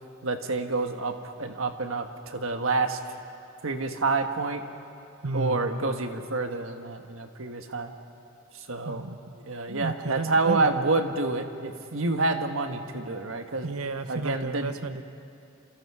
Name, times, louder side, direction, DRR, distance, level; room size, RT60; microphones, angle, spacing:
voice 1, 0.2-3.0 3.6-4.6 5.3-7.9 8.5-9.0 9.4-13.7 14.1-14.7, right 3 dB, 65° right, 6 dB, 1.6 m, -28 dB
voice 2, 5.2-5.6 8.8-9.2 9.7-10.8 13.6-15.0, right 3 dB, 90° right, 9 dB, 1.2 m, -32 dB
29.0 x 27.0 x 4.9 m, 2.5 s
head